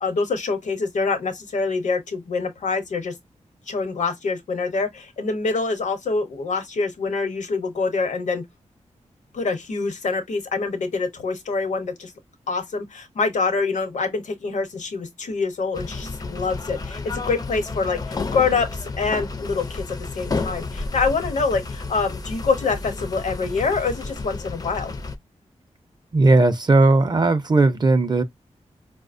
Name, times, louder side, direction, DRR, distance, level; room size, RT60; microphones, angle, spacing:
voice 1, 0.0-3.1 3.7-8.4 9.3-12.1 12.5-24.9, left 4 dB, 80° left, 0.9 m, -25 dB
sound 1, 15.7-25.2, left 3 dB, 30° left, 0.4 m, -31 dB
voice 2, 26.1-28.2, right 2 dB, 35° right, 0.4 m, -17 dB
4.7 x 2.1 x 2.5 m
wide cardioid pair, 115°, 12 cm